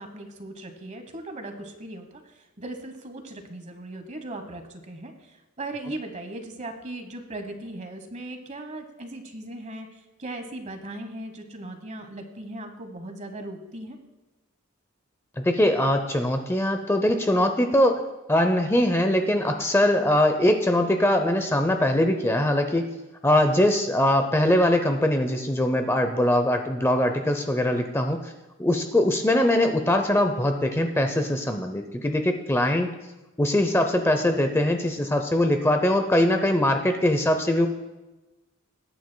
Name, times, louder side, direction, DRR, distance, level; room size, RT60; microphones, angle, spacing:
voice 1, 0.0-2.2 2.6-5.1 5.6-9.9 10.2-14.0, right 1 dB, 35° right, 7 dB, 1.2 m, -38 dB
voice 2, 15.4-18.0 18.3-22.9 23.2-28.3 28.6-32.9 33.4-37.7, left 1 dB, 10° left, 6 dB, 0.6 m, -22 dB
21.0 x 9.4 x 2.2 m, 1.1 s
head